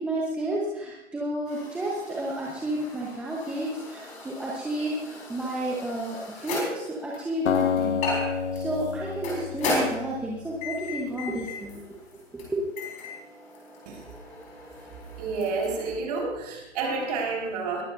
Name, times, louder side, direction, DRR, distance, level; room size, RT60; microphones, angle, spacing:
voice 1, 0.0-8.0 8.3-11.8 12.3-12.7, right 1 dB, 5° right, -4 dB, 1.0 m, -31 dB
sound 1, 1.5-15.9, left 2 dB, 20° left, 4.4 m, -36 dB
Acoustic guitar, 7.5-10.6, left 6 dB, 75° left, 1.0 m, -29 dB
voice 2, 15.2-17.8, right 4 dB, 35° right, 0 dB, 4.8 m, -29 dB
21.0 x 14.5 x 2.6 m, 0.97 s
hypercardioid pair, 145°, 37 cm